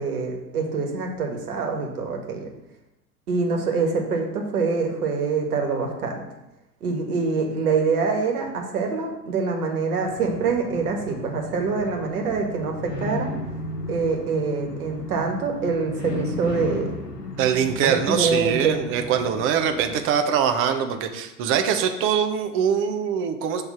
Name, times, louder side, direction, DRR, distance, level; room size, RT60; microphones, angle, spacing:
voice 1, 0.0-2.5 3.3-6.2 6.8-13.3 13.9-16.9 17.8-18.8, right 4 dB, 65° right, 2 dB, 1.5 m, -25 dB
sound 1, 10.0-20.0, left 2 dB, 85° left, 1.0 m, -35 dB
voice 2, 17.4-23.6, right 8 dB, 30° right, 7 dB, 0.6 m, -23 dB
6.3 x 3.3 x 5.6 m, 0.93 s
figure-of-eight pair, 95°, 47 cm